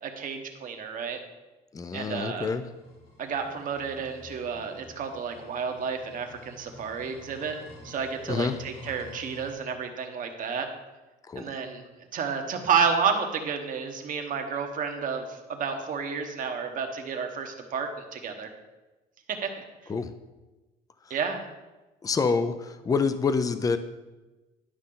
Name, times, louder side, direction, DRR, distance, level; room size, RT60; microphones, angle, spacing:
voice 1, 0.0-1.2 1.9-2.5 3.2-7.6 7.8-10.7 11.4-11.8 12.1-18.5 19.3-19.6 21.1-21.4, right 6 dB, 50° right, 5 dB, 1.2 m, -31 dB
voice 2, 1.7-2.7 8.3-8.6 11.2-11.5 19.9-20.1 21.1-21.2 22.0-23.8, left 4 dB, 20° left, 11 dB, 0.5 m, -27 dB
sound 1, 2.6-9.5, left 1 dB, 65° left, 2.4 m, -49 dB
11.5 x 5.5 x 3.8 m, 1.1 s
cardioid pair, 110°, 17 cm